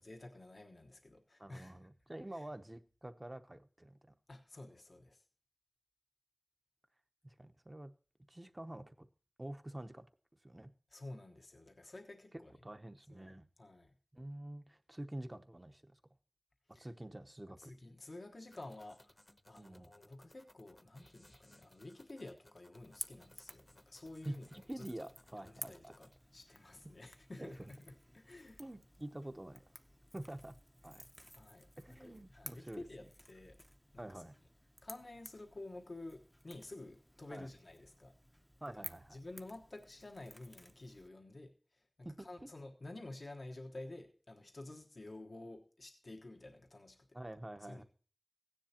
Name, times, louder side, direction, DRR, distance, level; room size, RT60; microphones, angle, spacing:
voice 1, 0.0-1.9 2.3-2.4 4.3-5.2 10.9-12.5 13.1-13.9 16.7-16.9 17.6-19.1 19.5-24.9 25.3-28.6 31.3-33.6 33.9-34.2 34.8-38.1 38.7-38.9 39.1-41.8 42.2-47.1 47.7-47.8, left 2 dB, 80° left, 3 dB, 1.2 m, -51 dB
voice 2, 1.4-4.1 7.2-7.9 8.3-9.1 9.4-10.1 10.4-10.7 12.6-13.5 14.1-16.0 16.8-17.7 19.6-19.9 24.2-25.9 27.4-27.7 28.6-29.6 30.1-30.6 30.8-31.1 31.8-32.8 34.0-34.3 37.3-37.5 38.6-39.2 42.0-42.5 47.1-47.8, right 1 dB, 30° right, 8 dB, 0.8 m, -47 dB
sound 1, 18.5-26.2, left 1 dB, 30° left, 0.9 m, -65 dB
Crackle / Crack, 22.8-41.1, equal, ahead, 0.6 m, -55 dB
15.5 x 10.0 x 2.9 m, 0.40 s
wide cardioid pair, 60°, 0 cm